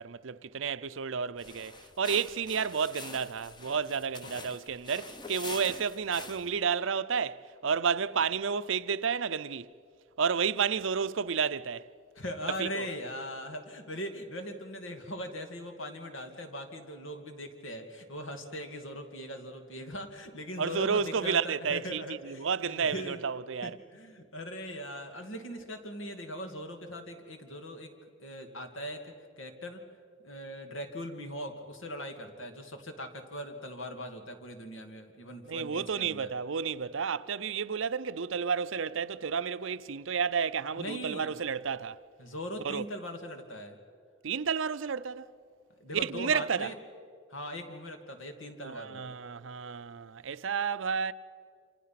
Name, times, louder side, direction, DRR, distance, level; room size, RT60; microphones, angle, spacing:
voice 1, 0.0-9.7 10.2-11.9 12.5-12.7 20.6-23.8 35.5-42.0 42.6-42.8 44.2-45.3 45.9-46.7 48.6-51.1, right 6 dB, 70° right, 0.6 m, -31 dB
sound 1, 1.4-6.6, left 3 dB, 20° left, 0.8 m, -45 dB
voice 2, 12.2-23.2 23.6-27.9 28.2-29.8 30.2-36.3 40.8-41.3 42.2-43.8 45.8-46.8 47.3-49.2, equal, 80° left, 2.5 m, -40 dB
28.0 x 27.0 x 5.9 m
head